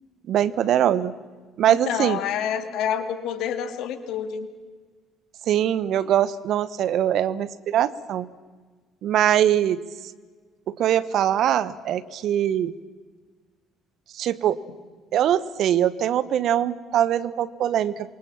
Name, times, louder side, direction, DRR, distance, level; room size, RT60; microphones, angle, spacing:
voice 1, 0.3-1.1 1.6-2.2 5.5-8.3 9.0-9.8 10.8-12.7 14.2-14.6 15.1-17.9, right 10 dB, 60° right, 16 dB, 1.1 m, -22 dB
voice 2, 1.7-4.5, left 8 dB, 65° left, 9 dB, 2.5 m, -28 dB
27.5 x 23.5 x 7.4 m, 1.4 s
hypercardioid pair, 50°, 0 cm